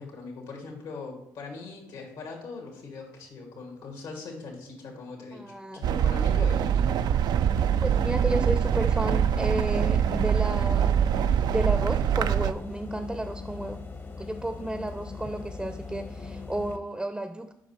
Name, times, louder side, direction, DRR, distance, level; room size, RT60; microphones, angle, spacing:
voice 1, 0.0-7.2, left 4 dB, 70° left, 0 dB, 2.2 m, -40 dB
voice 2, 5.3-5.8 7.8-11.1 11.5-13.8 14.2-17.5, right 1 dB, 10° right, 9 dB, 0.6 m, -32 dB
sound 1, 5.8-12.5, right 9 dB, 60° right, 0.4 m, -24 dB
sound 2, 7.5-16.8, left 4 dB, 30° left, 0.9 m, -40 dB
7.3 x 5.6 x 4.3 m, 0.79 s
supercardioid pair, 60°, 8 cm